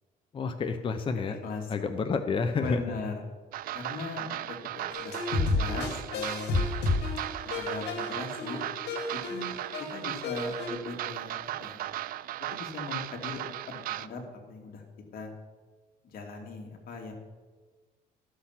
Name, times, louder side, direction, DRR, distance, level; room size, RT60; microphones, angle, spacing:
voice 1, 0.3-1.4 1.7-2.8, left 5 dB, 30° left, 7 dB, 0.7 m, -29 dB
voice 2, 1.2-1.9 2.6-3.1 3.7-6.7 7.4-8.6 9.1-11.9 12.5-13.4 13.7-14.2 14.5-14.8 15.1-15.3 16.0-17.1, left 4 dB, 60° left, 2 dB, 2.4 m, -39 dB
sound 1, 3.5-14.1, right 14 dB, 60° right, 0.4 m, -37 dB
sound 2, 4.9-10.7, left 3 dB, 80° left, 2.2 m, -31 dB
13.0 x 6.6 x 5.8 m, 1.3 s
cardioid pair, 110°, 17 cm